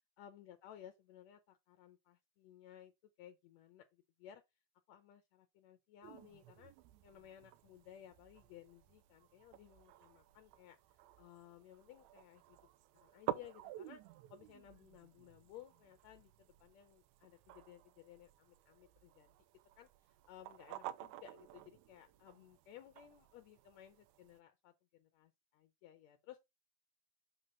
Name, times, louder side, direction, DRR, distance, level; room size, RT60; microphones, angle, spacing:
voice 1, 0.2-4.4 4.9-6.7 7.0-12.6 13.0-14.0 14.3-19.3 19.8-19.9 20.3-26.5, left 11 dB, 75° left, 1.8 m, -58 dB
sound 1, 6.0-24.4, right 13 dB, 80° right, 1.8 m, -51 dB
8.0 x 3.6 x 5.1 m
omnidirectional pair, 3.5 m